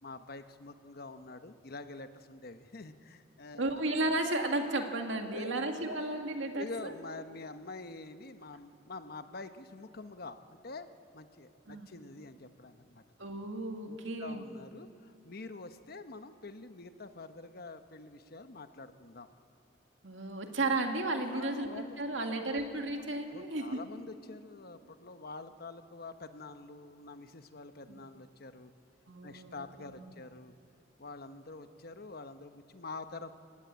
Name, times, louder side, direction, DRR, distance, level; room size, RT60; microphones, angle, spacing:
voice 1, 0.0-3.8 5.3-5.6 6.5-10.9 11.1-13.0 13.9-19.3 21.3-22.6 23.3-28.7 29.2-30.5 31.0-33.3, left 3 dB, 55° left, 9 dB, 1.1 m, -46 dB
voice 2, 3.6-6.9 11.7-11.9 13.2-14.5 20.0-21.7 22.0-23.8 27.9-28.0 29.1-30.0, right 2 dB, 75° right, 4 dB, 2.2 m, -34 dB
28.5 x 17.5 x 8.3 m, 2.6 s
head